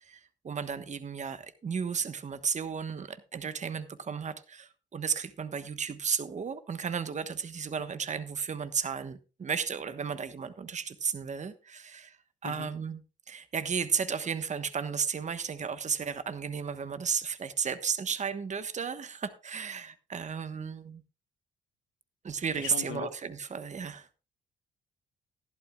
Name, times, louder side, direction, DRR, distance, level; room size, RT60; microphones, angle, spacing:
voice 1, 0.0-13.0 13.3-21.0 22.2-24.1, right 6 dB, 35° right, 1.2 m, -34 dB
voice 2, 22.6-23.1, left 10 dB, 90° left, 1.6 m, -39 dB
15.0 x 11.5 x 2.3 m
cardioid pair, 90°, 20 cm